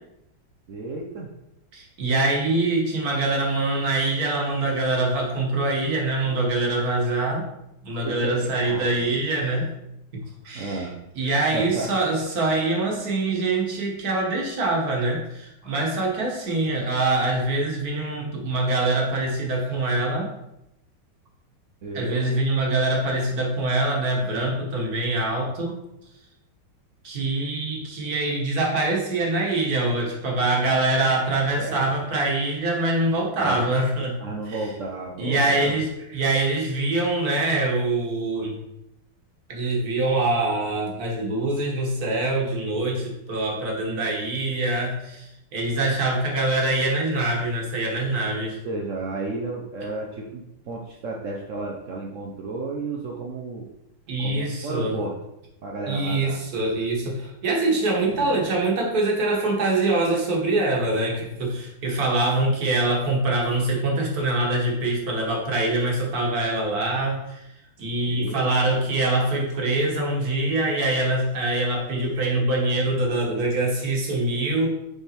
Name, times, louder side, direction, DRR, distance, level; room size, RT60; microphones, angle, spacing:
voice 1, 0.7-1.3 8.1-9.1 10.5-11.0 11.5-11.9 21.8-22.4 31.4-31.9 33.4-33.6 34.2-35.8 43.5-44.1 48.6-53.7 54.2-55.1 55.6-56.4 58.1-58.6 68.1-68.5, right 3 dB, 75° right, -1 dB, 0.7 m, -33 dB
voice 2, 1.7-7.5 7.8-9.7 10.1-10.9 11.1-20.3 21.9-25.8 27.0-34.2 34.5-34.6 35.2-38.6 39.5-48.6 54.1-55.0 55.9-67.4 67.8-74.7, right 2 dB, 50° right, -1 dB, 1.6 m, -24 dB
7.0 x 3.5 x 4.3 m, 0.86 s
omnidirectional pair, 2.2 m